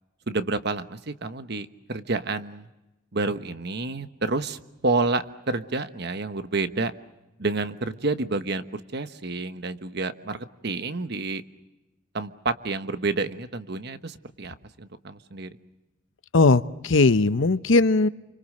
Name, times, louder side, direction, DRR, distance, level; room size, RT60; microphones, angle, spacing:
voice 1, 0.3-2.7 3.1-6.9 7.4-11.4 12.1-15.6, right 3 dB, 55° right, 10 dB, 1.2 m, -29 dB
voice 2, 16.3-18.1, left 3 dB, 70° left, 14 dB, 0.8 m, -19 dB
29.0 x 25.0 x 6.6 m, 1.0 s
head